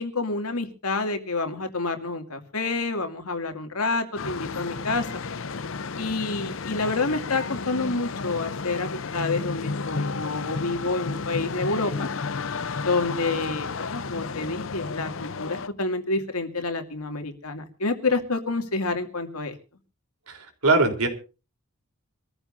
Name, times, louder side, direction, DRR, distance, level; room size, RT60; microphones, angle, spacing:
voice 1, 0.0-5.1 6.0-12.1 12.8-19.6, left 3 dB, 85° left, 6 dB, 2.5 m, -28 dB
sound 1, 4.2-15.7, left 4 dB, 60° left, 0.7 m, -32 dB
voice 2, 20.3-21.1, right 3 dB, 90° right, 5 dB, 3.7 m, -22 dB
25.5 x 14.5 x 2.7 m, 0.34 s
head